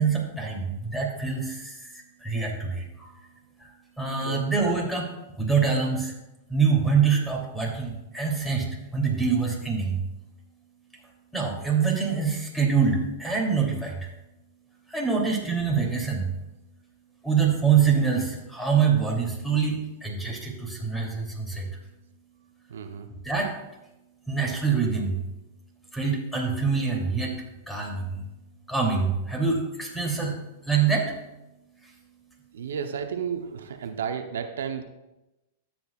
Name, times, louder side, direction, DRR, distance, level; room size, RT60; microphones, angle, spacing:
voice 1, 0.0-1.9 2.2-3.1 3.6-3.7 4.0-5.1 5.4-6.1 6.5-8.6 8.9-10.0 11.3-14.0 14.9-16.3 17.2-21.7 23.2-23.5 24.3-25.2 25.9-27.3 27.7-28.2 28.7-30.3 30.6-31.1, right 5 dB, 5° left, 0 dB, 2.9 m, -25 dB
voice 2, 22.7-23.1 32.5-34.8, right 7 dB, 80° right, 6 dB, 0.8 m, -32 dB
13.0 x 8.7 x 2.4 m, 0.97 s
hypercardioid pair, 110°, 0 cm